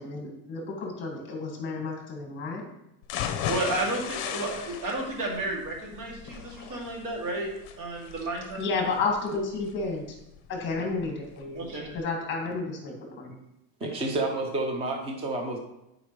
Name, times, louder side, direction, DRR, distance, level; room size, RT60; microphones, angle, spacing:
voice 1, 0.0-2.7 8.5-10.0 10.5-11.6 11.9-13.4, left 3 dB, 25° left, 1 dB, 1.9 m, -31 dB
sound 1, 3.0-11.0 11.4-11.5 11.9-12.0, left 9 dB, 45° left, 0.7 m, -37 dB
voice 2, 3.4-7.5 7.8-8.6 11.5-11.9, right 2 dB, 85° right, -2 dB, 2.7 m, -32 dB
voice 3, 13.8-15.6, right 2 dB, 15° right, 3 dB, 0.5 m, -29 dB
10.5 x 5.0 x 3.2 m, 0.87 s
cardioid pair, 175°, 47 cm